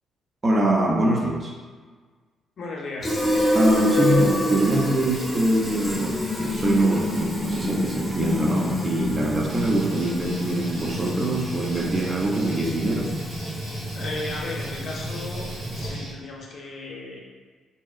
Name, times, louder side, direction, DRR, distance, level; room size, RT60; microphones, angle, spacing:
voice 1, 0.4-1.5 3.5-13.1, right 1 dB, 35° right, -1 dB, 0.4 m, -23 dB
voice 2, 2.6-3.1 13.9-17.2, left 2 dB, 60° left, -2 dB, 0.5 m, -35 dB
Fill (with liquid), 3.0-16.1, left 1 dB, 5° left, 0.7 m, -27 dB
Guitar, 9.5-16.2, right 1 dB, 85° right, 0.6 m, -41 dB
2.8 x 2.2 x 2.3 m, 1.5 s
cardioid pair, 90°, 0 cm